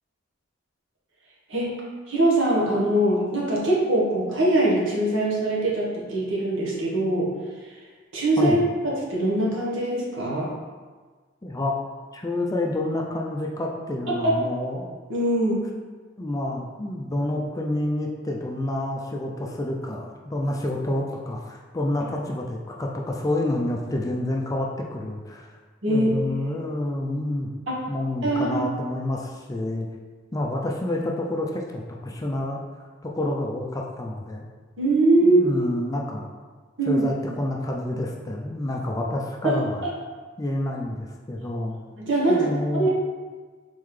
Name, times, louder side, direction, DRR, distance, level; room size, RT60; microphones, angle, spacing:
voice 1, 2.1-7.3 8.1-8.6 8.8-10.5 14.2-14.3 15.1-15.6 25.8-26.5 27.7-27.8 28.2-28.6 34.8-35.5 36.8-37.0 39.4-39.6 42.0-42.9, right 1 dB, 65° right, -4 dB, 1.2 m, -22 dB
voice 2, 11.4-11.8 12.1-15.0 16.2-25.5 25.9-27.5 27.9-29.9 30.3-32.6 33.0-34.4 35.2-36.3 36.9-39.8 40.4-41.8 42.3-42.9, left 1 dB, 15° left, -1 dB, 0.4 m, -28 dB
4.2 x 3.8 x 3.2 m, 1.4 s
head